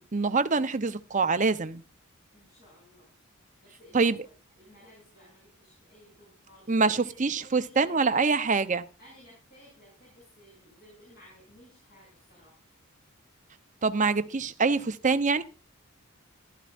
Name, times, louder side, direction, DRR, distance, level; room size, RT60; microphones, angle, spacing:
voice 1, 0.1-1.8 3.9-4.2 6.7-8.8 13.8-15.4, right 4 dB, 35° right, 0.7 m, -25 dB
voice 2, 2.3-3.2 3.6-4.1 4.5-8.1 9.0-12.6, equal, 50° left, 6.8 m, -56 dB
16.0 x 12.0 x 2.5 m
head